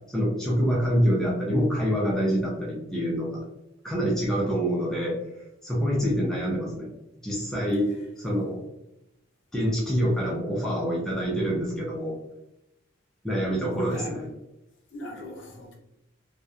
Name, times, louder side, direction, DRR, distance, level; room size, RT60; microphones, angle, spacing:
voice 1, 0.1-3.4 3.8-5.2 5.6-6.9 7.2-7.9 8.2-8.6 9.5-12.2 13.2-14.3, equal, ahead, -5 dB, 0.4 m, -26 dB
voice 2, 13.7-14.2 14.9-15.8, equal, 60° left, 0 dB, 0.6 m, -38 dB
2.8 x 2.1 x 2.3 m, 0.88 s
head